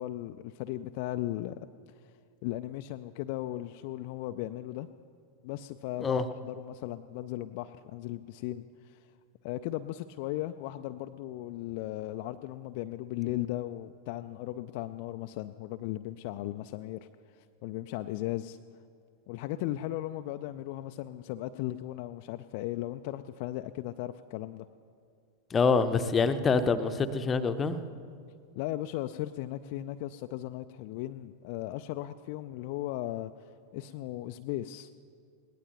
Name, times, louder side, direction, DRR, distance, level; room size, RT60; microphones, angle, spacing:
voice 1, 0.0-1.6 2.4-4.9 5.4-9.0 9.4-18.6 19.3-24.7 28.6-33.3 33.7-34.9, left 15 dB, 45° left, 9 dB, 0.4 m, -37 dB
voice 2, 25.5-27.8, left 4 dB, 20° left, 10 dB, 0.8 m, -26 dB
20.5 x 18.0 x 3.0 m, 2.2 s
figure-of-eight pair, 90°, 0 cm